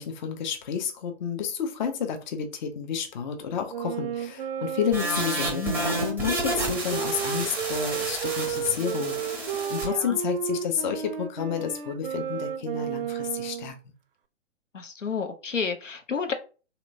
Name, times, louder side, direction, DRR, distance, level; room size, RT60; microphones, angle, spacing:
voice 1, 0.0-13.7, left 7 dB, 40° left, 0.6 m, -30 dB
Wind instrument woodwind instrument, 3.7-13.7, right 8 dB, 50° right, 0.5 m, -33 dB
sound 1, 4.9-9.9, right 1 dB, 5° right, 0.6 m, -31 dB
voice 2, 9.9-10.2 14.7-16.3, left 5 dB, 85° left, 0.7 m, -31 dB
3.1 x 2.9 x 2.5 m
figure-of-eight pair, 120°, 37 cm